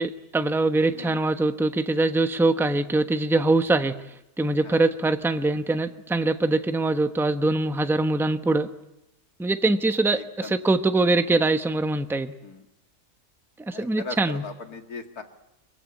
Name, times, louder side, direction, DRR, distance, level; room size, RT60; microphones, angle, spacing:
voice 1, 0.0-3.9 4.4-8.7 9.4-12.3 13.7-14.4, right 2 dB, ahead, 8 dB, 0.8 m, -23 dB
voice 2, 10.1-10.5 12.4-12.5 13.7-15.2, left 4 dB, 75° left, 5 dB, 2.6 m, -38 dB
25.0 x 23.0 x 9.0 m, 0.89 s
omnidirectional pair, 1.6 m